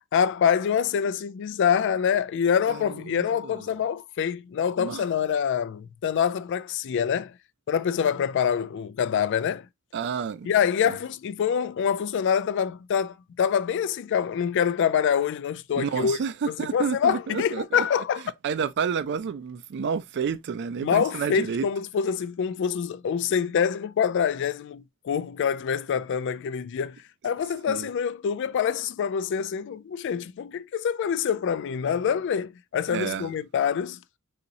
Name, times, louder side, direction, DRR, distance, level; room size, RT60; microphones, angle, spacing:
voice 1, 0.1-7.3 7.7-9.7 10.4-16.2 16.5-18.2 20.8-27.0 27.2-34.0, left 7 dB, 55° left, 0.3 m, -25 dB
voice 2, 2.7-3.5 4.8-5.0 9.9-10.5 10.8-11.0 15.8-17.8 18.4-21.7 27.7-27.9 32.9-33.3, right 6 dB, 55° right, 0.4 m, -30 dB
4.0 x 2.9 x 2.5 m
head